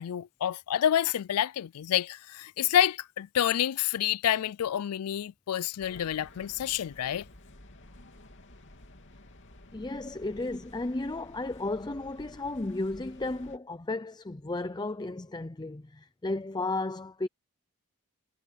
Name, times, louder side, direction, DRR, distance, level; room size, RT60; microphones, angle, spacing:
voice 1, 0.0-7.3, left 10 dB, 80° left, 0.4 m, -28 dB
sound 1, 5.8-13.6, left 1 dB, 55° left, 3.0 m, -52 dB
voice 2, 9.7-17.3, left 2 dB, 20° left, 0.6 m, -34 dB
head